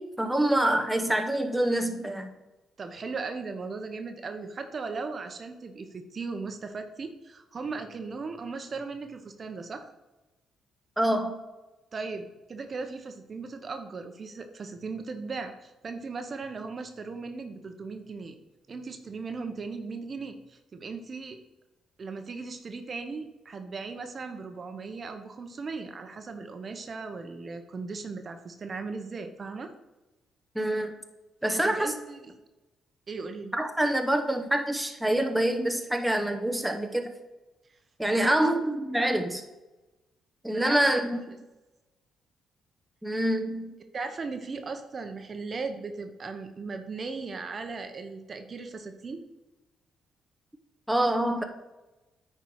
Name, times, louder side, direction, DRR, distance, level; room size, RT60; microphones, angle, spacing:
voice 1, 0.0-2.3 11.0-11.4 30.5-31.0 31.4-31.9 33.5-37.1 38.0-39.4 40.4-41.2 43.0-43.8 50.9-51.4, right 1 dB, 5° right, 5 dB, 0.8 m, -26 dB
voice 2, 2.8-9.9 11.9-18.4 18.7-21.4 22.0-29.7 31.4-32.4 33.1-33.5 38.0-38.4 40.5-40.8 41.1-41.2 43.9-49.2, right 4 dB, 40° right, 7 dB, 0.9 m, -37 dB
9.3 x 4.5 x 4.7 m, 1.1 s
cardioid pair, 90°, 0 cm